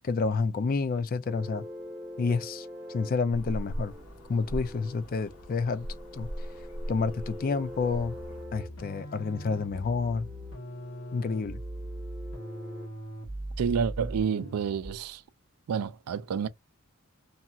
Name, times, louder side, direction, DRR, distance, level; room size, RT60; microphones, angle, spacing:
voice 1, 0.0-1.7 2.2-3.9 4.3-5.9 6.1-6.3 6.9-8.1 8.5-10.3 11.1-11.6, left 4 dB, 40° left, 0.3 m, -29 dB
sound 1, 1.2-12.9, left 1 dB, 10° right, 0.6 m, -45 dB
sound 2, 3.3-8.5, equal, 90° left, 1.2 m, -39 dB
sound 3, 7.9-15.1, right 1 dB, 65° left, 1.0 m, -40 dB
voice 2, 13.6-15.2 15.7-16.5, right 6 dB, 85° right, 0.4 m, -29 dB
2.7 x 2.4 x 2.7 m
head